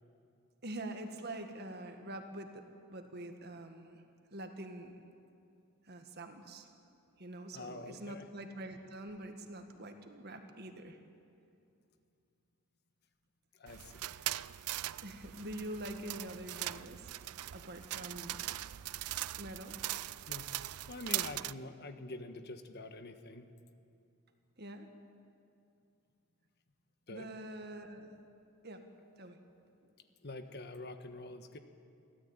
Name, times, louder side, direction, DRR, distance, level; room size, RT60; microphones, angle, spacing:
voice 1, 0.6-4.0 4.3-5.0 5.8-6.7 7.2-11.0 15.0-17.2 17.5-18.4 19.3-19.8 24.6-24.9 27.1-28.2 28.6-28.8 29.2-29.4, right 1 dB, 45° right, 6 dB, 1.8 m, -45 dB
voice 2, 7.5-8.3 13.6-14.1 17.9-18.0 20.3-20.5 20.9-23.5 27.1-27.3 30.2-31.6, left 2 dB, 45° left, 8 dB, 1.3 m, -46 dB
sound 1, 13.7-21.5, right 15 dB, 85° right, 0.5 m, -40 dB
23.5 x 16.5 x 9.0 m, 2.6 s
head